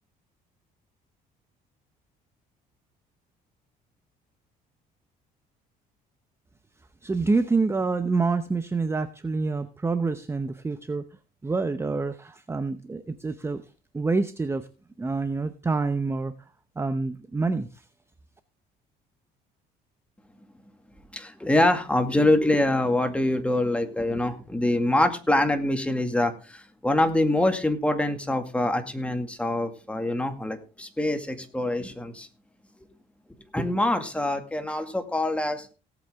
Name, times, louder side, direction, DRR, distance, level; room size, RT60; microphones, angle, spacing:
voice 1, 7.0-11.0 11.4-13.6 13.9-14.7 15.0-16.3 16.8-17.7, right 3 dB, 15° right, 11 dB, 0.8 m, -27 dB
voice 2, 21.1-32.3 33.5-35.7, left 1 dB, 5° left, 6 dB, 2.1 m, -25 dB
18.0 x 8.3 x 3.6 m, 0.33 s
cardioid pair, 110°, 17 cm